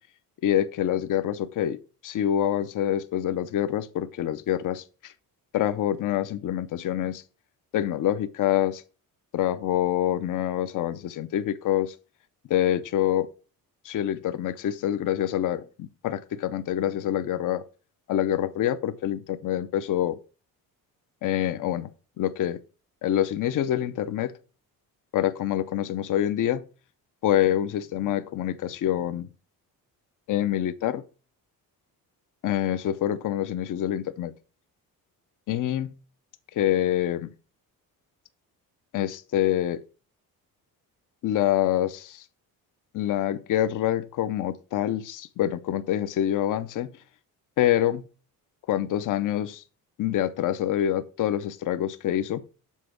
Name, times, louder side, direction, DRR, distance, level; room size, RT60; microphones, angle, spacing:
voice 1, 0.4-1.8 2.0-5.1 5.5-7.2 7.7-8.8 9.3-11.9 12.5-13.3 13.8-17.6 18.1-20.2 21.2-21.9 22.2-22.6 23.0-24.3 25.1-26.6 27.2-29.3 30.3-31.0 32.4-34.3 35.5-35.9 36.5-37.3 38.9-39.8 41.2-42.2 42.9-46.9 47.6-48.1 48.7-49.6 50.0-52.4, left 11 dB, 55° left, 0.6 m, -26 dB
7.3 x 4.3 x 6.1 m
cardioid pair, 165°, 37 cm